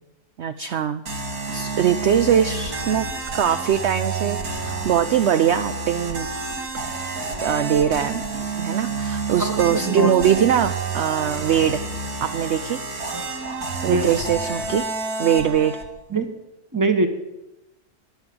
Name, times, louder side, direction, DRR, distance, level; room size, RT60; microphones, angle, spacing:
voice 1, 0.4-1.0 1.5-3.1 3.3-6.3 7.4-8.2 8.6-11.8 12.2-12.8 13.8-14.8 15.2-15.8, right 9 dB, 60° right, 11 dB, 0.8 m, -21 dB
sound 1, 1.0-15.9, right 4 dB, 80° right, 2.5 m, -29 dB
voice 2, 9.4-10.5 13.1-13.3 13.9-14.1 16.1-16.3 16.7-17.1, right 3 dB, 15° right, 7 dB, 1.2 m, -23 dB
11.5 x 11.0 x 7.9 m, 0.95 s
omnidirectional pair, 1.6 m